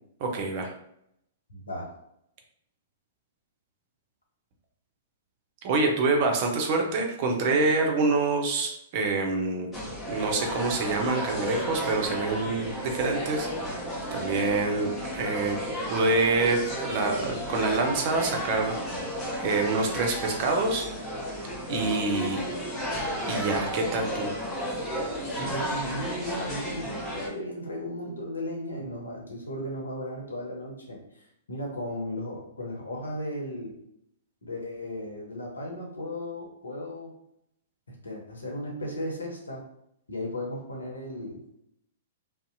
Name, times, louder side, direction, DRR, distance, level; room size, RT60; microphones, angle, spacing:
voice 1, 0.2-0.7 5.6-9.7 10.1-13.7 14.1-15.6 15.9-18.7 19.4-20.9 21.7-22.4 23.3-24.3, right 3 dB, 45° right, 2 dB, 0.6 m, -26 dB
voice 2, 1.5-1.9 25.3-33.7 34.4-37.1 37.9-39.6 40.1-41.4, left 1 dB, 80° left, -1 dB, 0.8 m, -36 dB
sound 1, 9.7-27.3, equal, 15° left, 0.8 m, -33 dB
2.6 x 2.0 x 2.5 m, 0.77 s
figure-of-eight pair, 110°, 0 cm